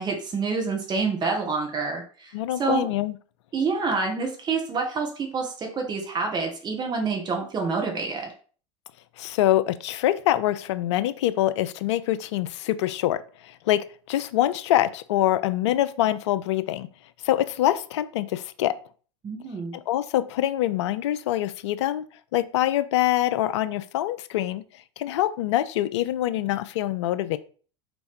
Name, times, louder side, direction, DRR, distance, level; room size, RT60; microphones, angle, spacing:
voice 1, 0.0-2.3 2.6-2.9 3.5-8.3 19.2-19.8, right 4 dB, 30° right, 2 dB, 1.0 m, -27 dB
voice 2, 2.3-3.2 9.2-16.9 17.2-18.8 19.7-22.0 22.3-24.6 25.0-27.4, left 13 dB, 70° left, 14 dB, 0.4 m, -25 dB
4.3 x 3.0 x 3.5 m, 0.41 s
hypercardioid pair, 85°, 15 cm